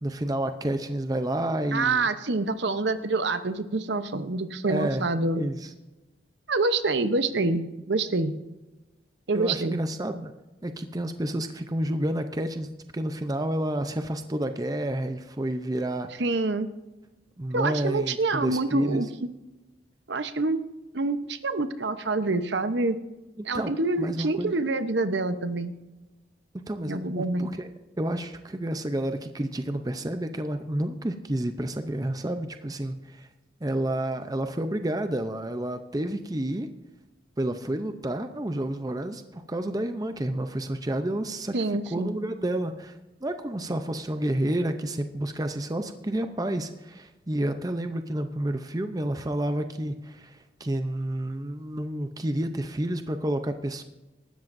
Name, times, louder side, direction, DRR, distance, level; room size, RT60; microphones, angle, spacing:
voice 1, 0.0-2.1 4.7-5.1 5.4-5.7 9.3-10.3 10.6-16.1 17.4-19.1 23.4-24.5 26.5-27.7 28.0-33.3 33.6-36.7 37.4-53.8, right 1 dB, 20° right, 8 dB, 0.6 m, -30 dB
voice 2, 1.7-5.4 6.5-8.3 9.3-9.8 16.2-16.7 17.5-19.1 20.1-20.6 20.9-23.0 23.4-25.7 26.8-27.5 41.5-42.2, right 3 dB, 65° right, 11 dB, 0.8 m, -26 dB
18.5 x 13.5 x 2.6 m, 1.1 s
head